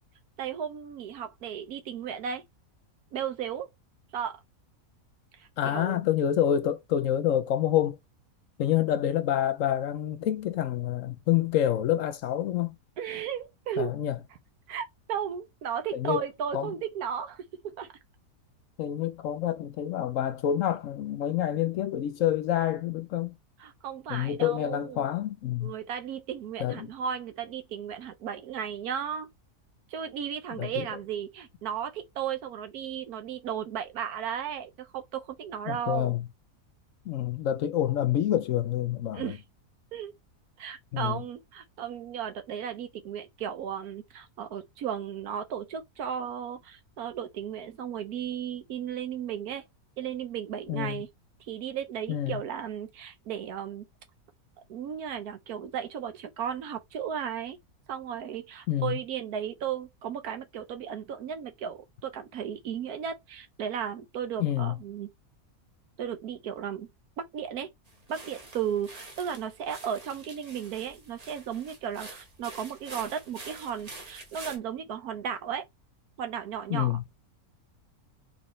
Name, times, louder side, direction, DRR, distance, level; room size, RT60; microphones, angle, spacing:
voice 1, 0.4-2.4 3.1-3.7 4.1-4.4 5.4-6.0 13.0-13.9 14.7-17.9 23.6-25.1 25.6-29.3 29.9-36.1 39.1-39.4 39.9-40.1 40.6-49.6 50.0-51.1 51.4-53.9 54.7-57.6 57.9-65.1 66.0-66.9 67.2-67.7 68.1-75.7 76.2-76.9, right 8 dB, 80° right, 1.3 m, -35 dB
voice 2, 5.6-8.0 8.6-12.8 13.8-14.2 15.9-16.2 16.5-16.7 18.8-23.4 24.1-25.7 26.6-26.9 30.5-30.9 35.7-36.2 37.1-39.4 40.9-41.2 50.7-51.0 52.1-52.4 58.7-59.0 64.4-64.7 76.7-77.0, left 11 dB, 70° left, 0.9 m, -27 dB
sound 1, 67.9-74.6, right 2 dB, 30° right, 1.0 m, -46 dB
4.2 x 3.3 x 3.2 m
omnidirectional pair, 1.6 m